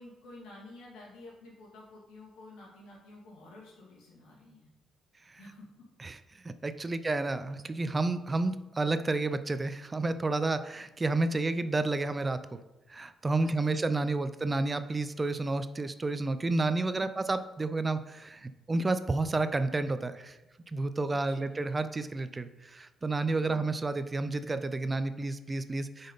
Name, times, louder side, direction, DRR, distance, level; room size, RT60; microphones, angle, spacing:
voice 1, 0.0-4.7 5.4-5.7 13.4-13.8 16.9-17.2 21.1-21.6 23.4-23.7, left 2 dB, 85° left, -4 dB, 2.4 m, -51 dB
voice 2, 6.4-12.4 12.9-20.4 20.7-26.1, right 2 dB, 25° right, 11 dB, 0.4 m, -30 dB
7.9 x 5.2 x 4.1 m, 1.0 s
cardioid pair, 90°, 0 cm